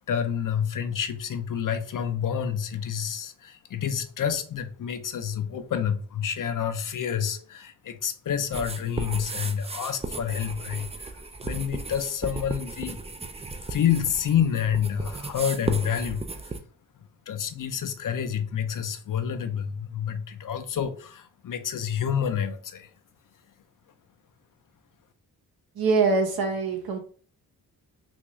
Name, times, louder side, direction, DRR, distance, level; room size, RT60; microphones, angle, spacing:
voice 1, 0.1-13.0 13.7-16.5 17.3-22.9, left 8 dB, 55° left, 0.6 m, -28 dB
sound 1, 8.5-16.6, right 3 dB, 15° right, 0.4 m, -35 dB
voice 2, 25.7-27.0, right 4 dB, 65° right, 1.0 m, -23 dB
3.5 x 2.5 x 3.0 m
cardioid pair, 60°, 39 cm